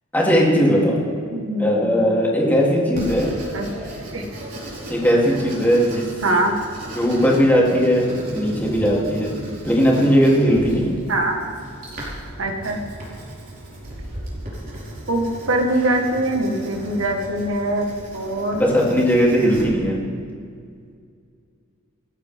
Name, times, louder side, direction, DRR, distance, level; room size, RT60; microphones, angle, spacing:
voice 1, 0.1-1.0 1.6-3.3 4.9-6.0 6.9-9.4 9.6-10.9 18.6-20.0, equal, 10° left, -4 dB, 3.4 m, -18 dB
voice 2, 1.3-2.2 3.5-3.7 4.1-4.2 6.2-6.5 11.1-11.4 12.4-12.8 15.1-17.9 18.1-18.6, right 1 dB, 75° right, 2 dB, 1.8 m, -22 dB
Writing, 2.9-19.6, right 1 dB, 50° right, 4.8 m, -36 dB
28.0 x 9.4 x 3.8 m, 2.2 s
head